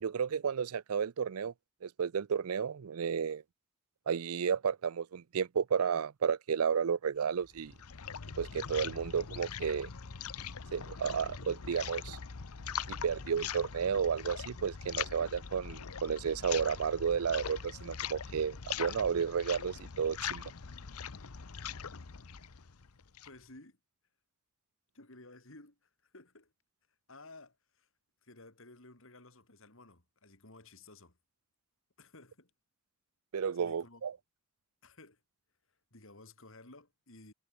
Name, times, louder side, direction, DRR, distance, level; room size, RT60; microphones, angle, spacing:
voice 1, 0.0-1.5 1.8-3.4 4.1-7.7 8.4-9.9 10.7-12.2 12.9-20.4 33.3-34.1, right 7 dB, 80° right, 0.5 m, -32 dB
sound 1, 7.4-23.4, left 7 dB, 90° left, 0.9 m, -42 dB
voice 2, 23.3-23.8 24.9-26.5 27.1-27.9 28.2-31.2 32.0-32.5 33.6-34.1 34.8-35.2 35.9-37.3, left 2 dB, 60° left, 4.0 m, -55 dB
head